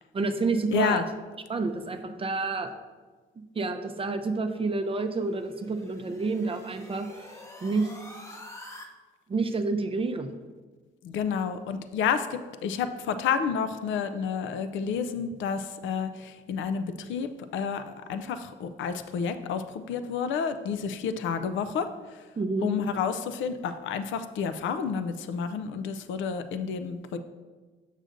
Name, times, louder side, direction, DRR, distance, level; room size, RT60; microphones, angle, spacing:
voice 1, 0.1-1.0 1.5-2.7 3.5-7.9 9.3-10.4 22.4-22.7, right 3 dB, 30° right, 7 dB, 0.5 m, -29 dB
voice 2, 0.7-1.0 11.0-22.2 22.6-27.2, left 6 dB, 75° left, 10 dB, 0.4 m, -30 dB
sound 1, 4.9-8.9, left 1 dB, 15° left, 0.7 m, -47 dB
6.4 x 6.4 x 2.5 m, 1.4 s
cardioid pair, 90°, 20 cm